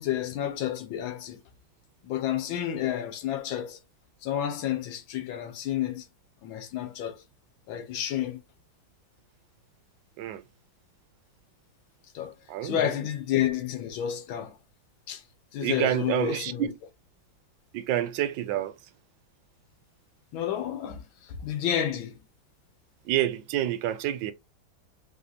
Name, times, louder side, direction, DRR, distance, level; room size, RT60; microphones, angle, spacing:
voice 1, 0.0-1.4 2.0-3.8 4.2-6.1 6.4-7.2 7.7-8.4 12.1-12.3 12.6-14.6 15.1-15.2 15.5-16.7 20.3-22.2, left 11 dB, 80° left, 1.6 m, -30 dB
voice 2, 12.5-12.9 15.6-16.8 17.7-18.7 23.1-24.3, right 11 dB, 75° right, 1.2 m, -28 dB
3.9 x 3.7 x 2.7 m
omnidirectional pair, 2.1 m